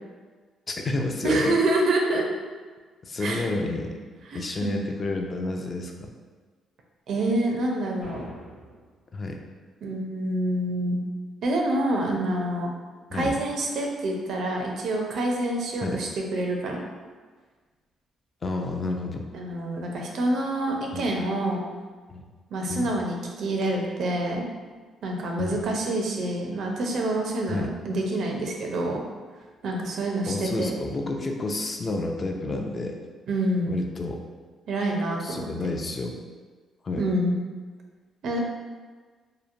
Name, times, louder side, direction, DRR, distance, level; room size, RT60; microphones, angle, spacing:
voice 1, 0.7-1.5 3.0-3.9 4.3-6.1 9.1-9.4 13.1-13.4 15.8-16.0 18.4-19.3 20.9-21.1 22.1-22.2 22.7-22.9 25.4-25.6 27.5-27.7 30.3-33.0 33.7-34.2 35.2-36.2 36.8-37.0, left 2 dB, 35° left, 3 dB, 0.3 m, -30 dB
voice 2, 1.2-2.2 3.2-3.5 4.3-4.8 7.1-8.3 9.8-11.0 11.4-12.7 13.1-16.8 19.3-21.6 22.5-24.5 25.0-29.0 29.6-30.8 33.3-33.8 34.7-35.5 37.0-37.4 38.2-38.4, right 1 dB, 70° right, 0 dB, 0.5 m, -27 dB
sound 1, 8.0-9.0, left 1 dB, 80° left, 0.7 m, -43 dB
2.9 x 2.1 x 2.5 m, 1.4 s
cardioid pair, 90°, 0 cm